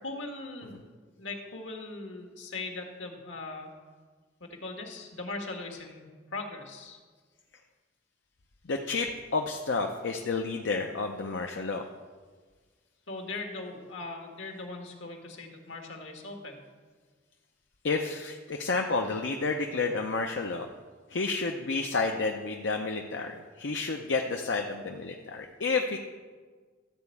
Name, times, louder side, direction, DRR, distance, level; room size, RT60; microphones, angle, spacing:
voice 1, 0.0-0.8 1.2-3.7 4.4-7.0 13.1-16.6, left 3 dB, 90° left, 3 dB, 1.7 m, -40 dB
voice 2, 8.6-11.9 17.8-20.7 21.1-26.0, left 4 dB, 75° left, 3 dB, 0.7 m, -30 dB
13.0 x 4.4 x 8.3 m, 1.5 s
head